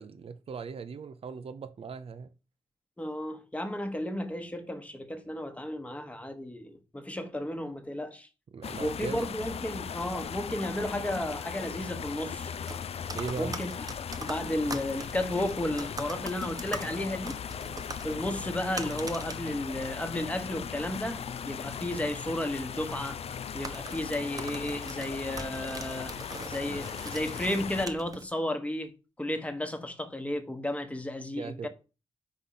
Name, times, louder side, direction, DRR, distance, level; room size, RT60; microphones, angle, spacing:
voice 1, 0.0-2.3 8.5-9.3 13.1-13.6 31.3-31.7, right 5 dB, 55° right, 0.6 m, -39 dB
voice 2, 3.0-8.3 8.8-12.5 13.4-13.7 14.2-17.4 18.0-23.2 23.5-26.2 26.5-31.7, left 1 dB, 10° left, 1.2 m, -33 dB
sound 1, 8.6-27.9, left 7 dB, 60° left, 0.4 m, -38 dB
sound 2, 12.5-28.2, right 2 dB, 30° right, 0.9 m, -43 dB
4.9 x 3.9 x 5.7 m
cardioid pair, 65°, 12 cm